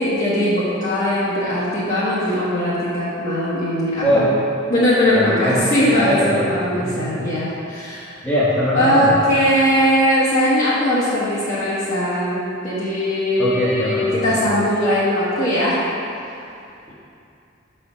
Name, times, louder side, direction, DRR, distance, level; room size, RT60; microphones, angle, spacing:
voice 1, 0.0-4.3 4.7-8.2 8.7-15.8, equal, 40° left, -10 dB, 1.0 m, -20 dB
voice 2, 5.1-5.6 6.0-6.5 7.0-7.1 8.2-9.2 13.4-14.2 16.9-17.0, equal, 15° left, -11 dB, 0.9 m, -21 dB
6.1 x 4.3 x 4.9 m, 2.6 s
head